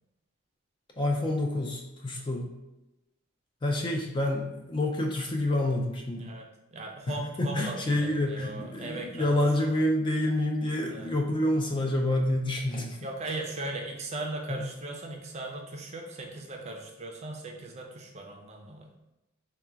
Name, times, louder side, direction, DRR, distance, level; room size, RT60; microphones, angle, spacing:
voice 1, 1.0-2.5 3.6-6.3 7.1-13.1 14.5-14.6, left 1 dB, 25° left, 1 dB, 0.4 m, -28 dB
voice 2, 6.2-9.3 10.9-11.1 13.0-18.9, right 2 dB, 30° right, 2 dB, 0.5 m, -38 dB
3.6 x 2.3 x 4.4 m, 0.97 s
head